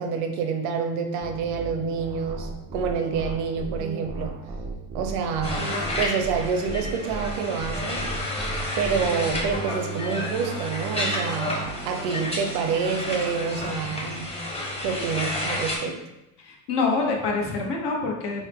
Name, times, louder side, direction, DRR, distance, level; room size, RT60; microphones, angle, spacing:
voice 1, 0.0-4.4 4.9-8.1 8.8-14.4 14.8-16.0, right 5 dB, 80° right, 5 dB, 0.7 m, -28 dB
sound 1, 1.2-13.6, right 3 dB, 15° right, 0.3 m, -36 dB
sound 2, 5.4-15.8, left 2 dB, 15° left, 0.8 m, -31 dB
voice 2, 16.4-18.4, left 4 dB, 60° left, 0 dB, 1.0 m, -26 dB
3.7 x 2.1 x 3.4 m, 0.93 s
supercardioid pair, 85°, 46 cm